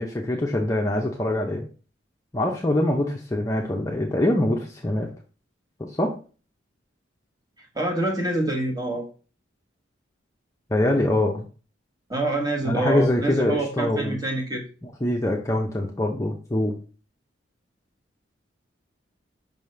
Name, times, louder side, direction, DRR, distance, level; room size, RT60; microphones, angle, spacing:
voice 1, 0.0-1.6 2.3-5.1 5.8-6.1 10.7-11.4 12.6-14.2 14.8-16.8, left 1 dB, 15° left, 0 dB, 0.6 m, -24 dB
voice 2, 7.7-9.0 12.1-14.6, right 2 dB, 20° right, 1 dB, 1.2 m, -26 dB
5.4 x 5.4 x 3.2 m, 0.36 s
head